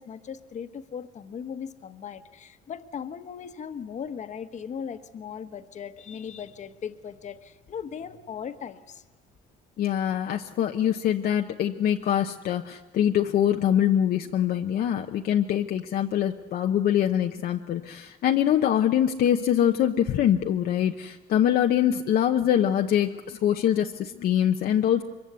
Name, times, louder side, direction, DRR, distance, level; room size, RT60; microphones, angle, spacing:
voice 1, 0.0-9.0, left 7 dB, 45° left, 9 dB, 1.3 m, -38 dB
voice 2, 9.8-25.0, left 10 dB, 60° left, 3 dB, 0.9 m, -24 dB
24.5 x 23.0 x 8.2 m, 1.2 s
cardioid pair, 110°, 17 cm